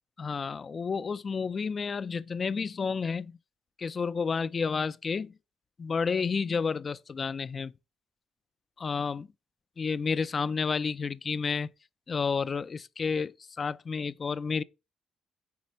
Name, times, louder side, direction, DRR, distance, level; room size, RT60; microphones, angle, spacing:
voice 1, 0.2-3.3 3.8-5.3 5.8-7.7 8.8-9.3 9.8-11.7 12.1-14.6, left 5 dB, 40° left, 0.4 m, -30 dB
9.4 x 3.3 x 6.3 m
cardioid pair, 90°, 0 cm